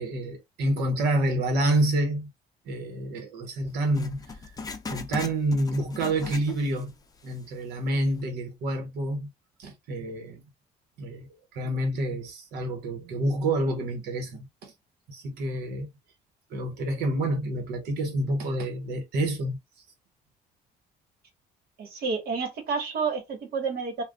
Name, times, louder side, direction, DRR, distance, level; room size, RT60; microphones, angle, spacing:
voice 1, 0.0-2.3 2.7-4.2 4.9-6.9 7.2-9.3 9.6-10.4 11.0-11.3 11.5-14.7 15.1-15.9 16.5-19.6, right 1 dB, 85° right, 1.2 m, -28 dB
Writing, 3.9-6.9 7.2-7.3 8.0-8.1, left 4 dB, 20° left, 0.5 m, -39 dB
voice 2, 21.8-24.0, right 5 dB, 65° right, 1.4 m, -30 dB
2.5 x 2.5 x 3.5 m
cardioid pair, 110°, 17 cm